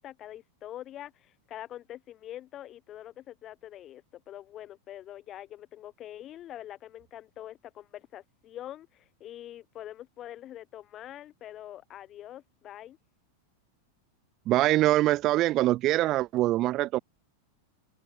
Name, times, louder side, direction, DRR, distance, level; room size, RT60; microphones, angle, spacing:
voice 1, 0.0-13.0, left 12 dB, 30° left, 7.4 m, -44 dB
voice 2, 14.5-17.0, right 16 dB, 35° right, 1.0 m, -24 dB
figure-of-eight pair, 90°, 0 cm